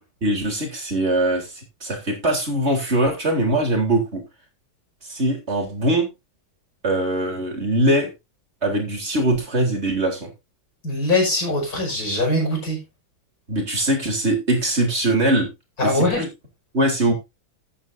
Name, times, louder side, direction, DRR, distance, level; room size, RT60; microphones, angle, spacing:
voice 1, 0.2-4.2 5.1-6.1 6.8-8.1 8.6-10.3 13.5-15.5 15.8-16.3 16.7-17.1, right 1 dB, 30° right, 2 dB, 3.8 m, -22 dB
voice 2, 10.8-12.8 15.8-16.2, left 1 dB, 45° left, 0 dB, 5.9 m, -22 dB
14.0 x 9.0 x 2.7 m, 0.24 s
omnidirectional pair, 2.2 m